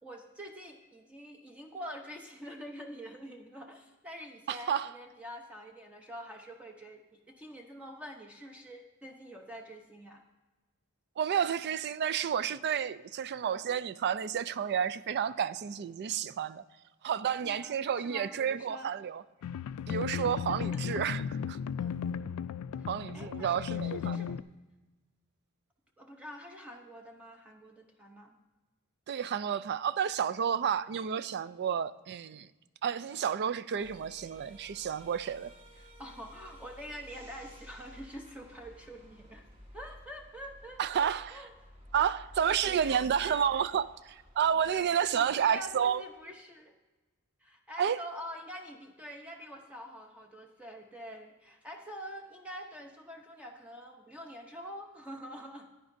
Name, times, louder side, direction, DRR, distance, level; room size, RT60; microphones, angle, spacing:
voice 1, 0.0-10.2 13.4-13.6 17.4-18.9 20.1-21.0 21.8-22.0 22.8-22.9 23.1-24.3 26.0-28.4 33.8-34.0 35.8-39.4 39.7-41.5 42.8-43.6 45.1-46.7 47.4-55.7, equal, 5° right, 0.7 m, -46 dB
voice 2, 4.5-4.9 11.2-16.6 17.0-19.2 19.9-21.2 21.5-21.6 22.9-24.3 29.1-32.5 32.8-35.5 40.8-41.4 41.9-46.0 47.8-48.0, right 8 dB, 50° right, 0.3 m, -30 dB
sound 1, 19.4-24.4, left 7 dB, 85° left, 0.3 m, -35 dB
sound 2, 33.8-45.9, equal, 25° right, 1.6 m, -53 dB
15.0 x 9.9 x 2.6 m
head